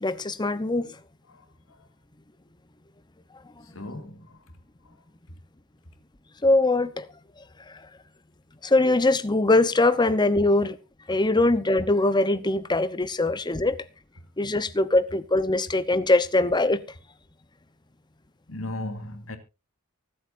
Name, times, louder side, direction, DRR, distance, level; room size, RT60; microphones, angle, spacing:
voice 1, 0.0-0.9 6.4-7.0 7.7-7.8 8.6-10.8 11.1-13.8 14.4-16.8, left 2 dB, 20° left, 0.9 m, -22 dB
voice 2, 3.7-4.4 18.5-19.4, left 1 dB, 70° left, 2.6 m, -36 dB
24.0 x 8.4 x 2.6 m
head